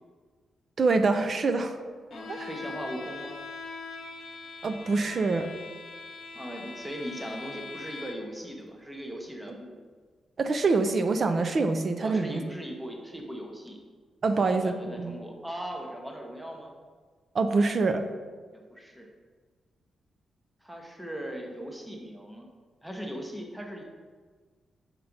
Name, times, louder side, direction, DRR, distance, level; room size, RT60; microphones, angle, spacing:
voice 1, 0.8-1.8 2.3-2.5 4.6-5.5 10.4-12.4 14.2-15.2 17.3-18.0, right 3 dB, 35° right, 8 dB, 0.4 m, -25 dB
Bowed string instrument, 2.1-8.4, left 3 dB, 65° left, 0.6 m, -42 dB
voice 2, 2.1-3.4 6.3-9.7 12.0-13.8 14.4-16.7 18.5-19.1 20.6-22.5 22.8-23.8, equal, 5° right, 1 dB, 0.7 m, -39 dB
5.8 x 4.0 x 5.0 m, 1.5 s
wide cardioid pair, 180°, 0 cm